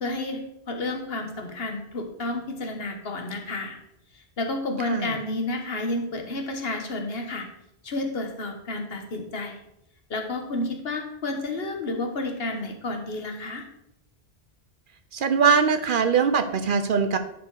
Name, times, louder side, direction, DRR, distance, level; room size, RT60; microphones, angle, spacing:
voice 1, 0.0-3.8 4.1-7.5 7.8-9.6 10.1-13.7, left 2 dB, 70° left, 4 dB, 1.4 m, -31 dB
voice 2, 15.1-17.2, right 6 dB, 60° right, 9 dB, 0.8 m, -22 dB
11.0 x 4.5 x 4.7 m, 0.82 s
omnidirectional pair, 1.1 m